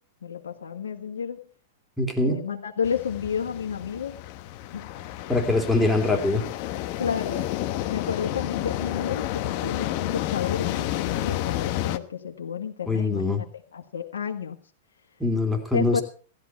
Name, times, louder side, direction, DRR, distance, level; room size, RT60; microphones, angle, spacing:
voice 1, 0.2-1.4 2.2-4.2 4.7-4.9 5.8-6.3 7.0-7.4 7.9-14.6 15.7-16.0, left 7 dB, 80° left, 2 dB, 1.7 m, -31 dB
voice 2, 2.0-2.4 5.3-6.4 12.9-13.4 15.2-16.0, left 2 dB, ahead, 2 dB, 3.0 m, -23 dB
sound 1, 2.8-12.0, left 14 dB, 50° left, 1.1 m, -30 dB
16.0 x 12.5 x 4.6 m, 0.40 s
hypercardioid pair, 110°, 0 cm